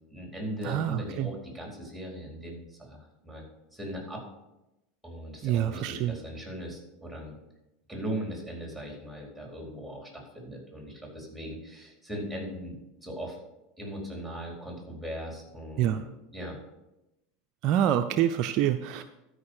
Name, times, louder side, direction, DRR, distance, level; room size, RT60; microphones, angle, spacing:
voice 1, 0.1-3.4 3.7-4.2 5.0-7.4 7.9-13.4 13.8-16.6, equal, ahead, 0 dB, 4.4 m, -39 dB
voice 2, 0.6-1.3 5.4-6.2 15.8-16.0 17.6-19.0, right 11 dB, 50° right, 8 dB, 0.5 m, -26 dB
12.5 x 5.3 x 6.6 m, 0.94 s
hypercardioid pair, 80°, 0 cm